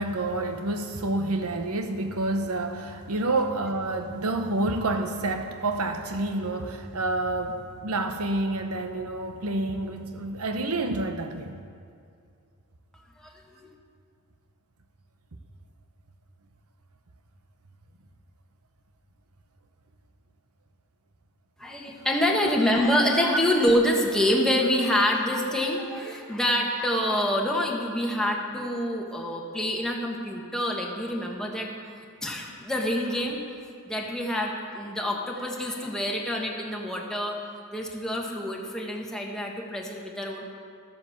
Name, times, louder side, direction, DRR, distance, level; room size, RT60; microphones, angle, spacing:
voice 1, 0.0-11.6, right 2 dB, 80° right, 6 dB, 1.0 m, -28 dB
voice 2, 21.6-31.7 32.2-33.4 33.8-37.4 37.7-40.4, left 1 dB, 5° left, -1 dB, 1.4 m, -26 dB
13.0 x 7.7 x 7.2 m, 2.3 s
head